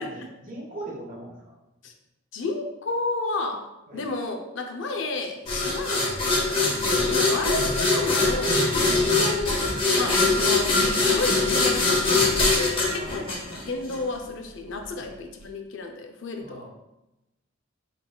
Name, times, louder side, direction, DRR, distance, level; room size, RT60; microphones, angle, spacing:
voice 1, 0.0-1.5 3.9-4.0 7.2-7.4 8.8-9.0 13.0-13.2 14.9-15.0 16.4-16.7, right 1 dB, 40° right, -4 dB, 1.1 m, -40 dB
voice 2, 2.3-3.7 3.9-9.7 10.0-13.4 13.6-16.7, left 3 dB, 65° left, 4 dB, 0.5 m, -32 dB
sound 1, 5.5-14.0, left 3 dB, 25° left, 0.8 m, -22 dB
4.0 x 3.8 x 2.3 m, 0.94 s
head